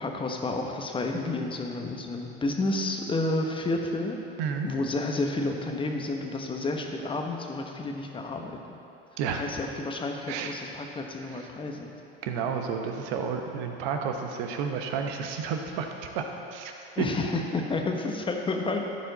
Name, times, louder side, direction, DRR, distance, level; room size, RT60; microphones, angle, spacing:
voice 1, 0.0-4.2 4.6-8.8 9.3-11.9 17.0-18.8, left 2 dB, 15° left, 2 dB, 1.0 m, -30 dB
voice 2, 12.2-15.9 16.1-16.7 17.0-17.1, right 6 dB, 60° right, 4 dB, 1.1 m, -31 dB
14.0 x 4.9 x 4.0 m, 2.7 s
hypercardioid pair, 100°, 29 cm